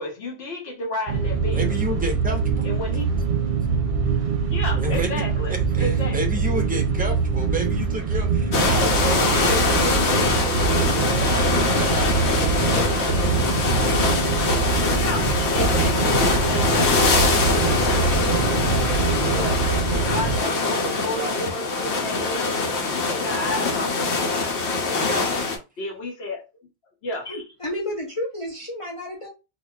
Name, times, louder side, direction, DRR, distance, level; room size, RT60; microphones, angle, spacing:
voice 1, 0.0-1.8 2.6-3.1 4.5-6.2 14.4-14.5 14.9-17.0 17.4-19.7 20.0-24.3 25.8-26.4 27.0-27.3, left 2 dB, 70° left, 1.1 m, -32 dB
sound 1, 1.1-20.4, right 5 dB, 55° right, 0.7 m, -24 dB
voice 2, 1.5-2.7 4.7-5.2 5.5-12.3 12.7-13.1 13.7-13.9 21.1-21.4 24.7-25.3, right 1 dB, 15° right, 0.4 m, -31 dB
sound 2, 8.5-25.6, left 3 dB, 90° left, 1.0 m, -23 dB
voice 3, 27.3-29.3, left 1 dB, 35° left, 0.7 m, -31 dB
3.9 x 2.3 x 2.3 m
omnidirectional pair, 1.1 m